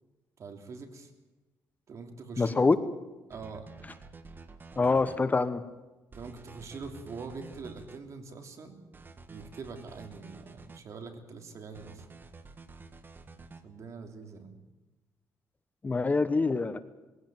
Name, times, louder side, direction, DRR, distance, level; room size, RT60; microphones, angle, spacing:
voice 1, 0.4-1.1 1.9-2.6 3.3-3.7 6.1-8.8 9.3-12.0 13.6-14.6, right 4 dB, 50° right, 4 dB, 3.1 m, -44 dB
voice 2, 2.4-2.8 4.8-5.6 15.8-16.8, left 3 dB, 25° left, 12 dB, 1.0 m, -25 dB
sound 1, 3.3-5.2 6.1-8.0 8.9-10.8 11.7-13.6, right 3 dB, 30° right, 1.6 m, -50 dB
21.0 x 16.5 x 9.0 m, 1.1 s
cardioid pair, 115°, 7 cm